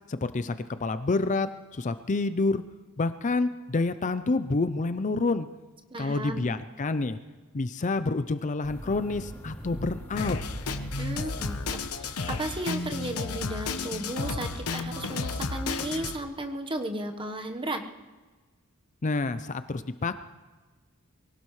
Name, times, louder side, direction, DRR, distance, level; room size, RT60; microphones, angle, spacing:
voice 1, 0.1-2.6 3.0-5.5 6.0-7.2 7.5-10.4 19.0-20.1, left 3 dB, 35° left, 12 dB, 0.5 m, -28 dB
voice 2, 5.9-6.5 11.0-17.8, right 1 dB, 25° right, 5 dB, 1.2 m, -34 dB
sound 1, 8.6-12.4, equal, 10° left, 2.9 m, -41 dB
Drum kit, 10.2-16.2, left 3 dB, 80° left, 1.0 m, -32 dB
24.0 x 17.5 x 3.2 m, 1.3 s
head